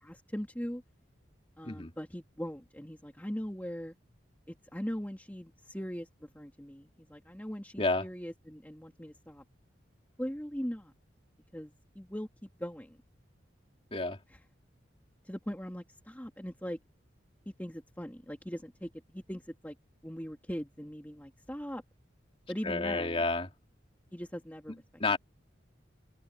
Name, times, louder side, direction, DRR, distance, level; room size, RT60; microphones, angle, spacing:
voice 1, 0.0-0.8 1.6-3.9 4.5-9.4 10.2-10.9 11.5-13.0 15.2-16.8 17.6-19.8 20.0-21.8 22.5-23.2 24.1-24.8, equal, 10° left, 2.2 m, -40 dB
voice 2, 22.6-23.5 24.7-25.2, left 3 dB, 30° left, 3.3 m, -30 dB
open air
head